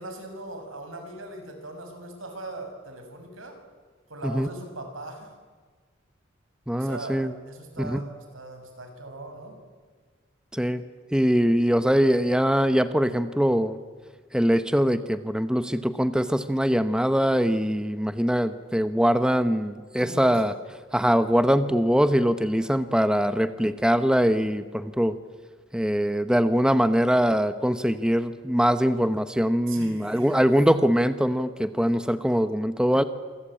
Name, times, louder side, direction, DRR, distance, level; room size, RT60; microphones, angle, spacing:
voice 1, 0.0-3.6 4.1-5.3 6.7-9.6 20.0-20.4 29.7-30.5, right 2 dB, 80° right, 5 dB, 6.3 m, -40 dB
voice 2, 6.7-7.3 7.8-8.0 10.5-10.8 11.1-13.8 14.3-20.5 20.9-25.2 25.7-33.0, equal, 5° right, 11 dB, 0.8 m, -22 dB
28.0 x 23.5 x 8.9 m, 1.5 s
head